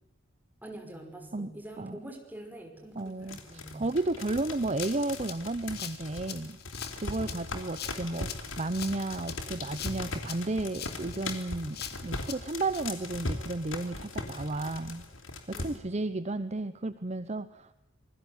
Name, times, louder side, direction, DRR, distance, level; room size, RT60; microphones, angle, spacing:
voice 1, 0.6-3.8 7.1-7.5 15.5-16.0, right 1 dB, 10° right, 3 dB, 5.6 m, -46 dB
voice 2, 3.0-15.1 15.5-17.7, right 2 dB, 35° right, 13 dB, 0.9 m, -33 dB
sound 1, 3.1-15.8, left 2 dB, 75° left, 3.7 m, -39 dB
Rattle (instrument), 4.8-12.8, left 9 dB, 55° left, 2.6 m, -43 dB
27.0 x 20.5 x 8.4 m, 0.86 s
head